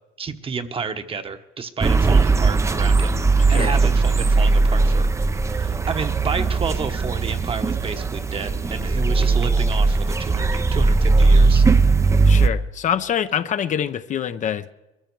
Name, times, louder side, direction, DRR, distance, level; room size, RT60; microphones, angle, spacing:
voice 1, 0.2-3.2 3.5-5.1 5.5-11.6, right 5 dB, 35° right, 1.1 m, -30 dB
sound 1, 1.8-12.5, right 3 dB, 15° right, 0.6 m, -18 dB
voice 2, 12.2-14.7, left 9 dB, 45° left, 0.7 m, -25 dB
22.0 x 14.0 x 4.7 m
cardioid pair, 110°, 17 cm